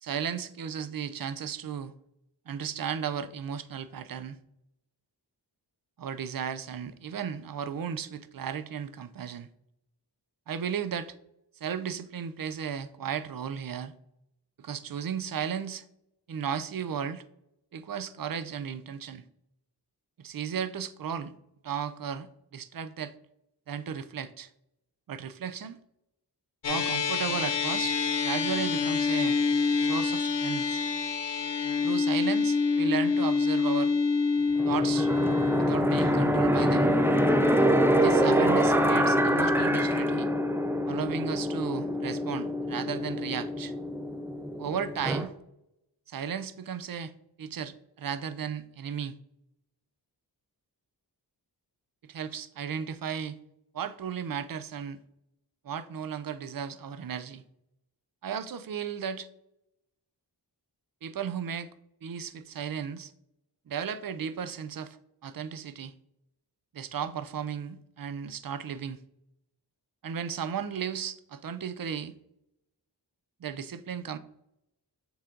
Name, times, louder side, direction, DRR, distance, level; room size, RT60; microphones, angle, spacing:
voice 1, 0.0-1.9 2.5-4.4 6.0-9.5 10.5-11.1 11.6-13.9 14.6-15.8 16.3-17.2 17.7-19.2 20.2-21.3 21.6-23.1 23.7-24.5 25.1-25.8 26.6-28.0 28.2-29.4 29.8-30.8 31.8-33.9 34.7-35.1 35.6-36.9 38.0-40.3 40.9-43.7 44.6-45.3 46.1-47.1 47.4-49.1 52.0-53.4 53.7-55.0 55.6-57.4 58.2-59.3 61.0-61.7 62.0-63.1 63.7-65.0 65.2-65.9 66.7-69.0 70.0-72.1 73.4-74.2, right 7 dB, 55° right, 0.5 m, -35 dB
sound 1, 26.6-45.2, left 4 dB, 85° left, 0.7 m, -28 dB
sound 2, 34.6-45.3, right 2 dB, 5° right, 0.4 m, -26 dB
6.9 x 3.7 x 3.8 m
wide cardioid pair, 100°, 41 cm